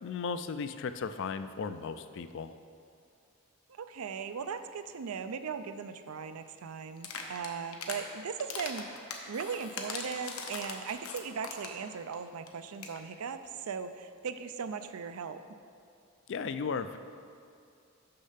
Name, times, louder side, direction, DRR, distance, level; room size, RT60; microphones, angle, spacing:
voice 1, 0.0-2.6 16.3-17.0, left 5 dB, 60° left, 10 dB, 0.4 m, -36 dB
voice 2, 3.7-15.4, right 6 dB, 85° right, 10 dB, 0.4 m, -38 dB
sound 1, 7.0-8.0 8.4-11.8 12.1-12.2 12.5-12.6 12.7-13.0, left 5 dB, 80° left, 0.9 m, -40 dB
6.6 x 6.4 x 5.7 m, 2.4 s
head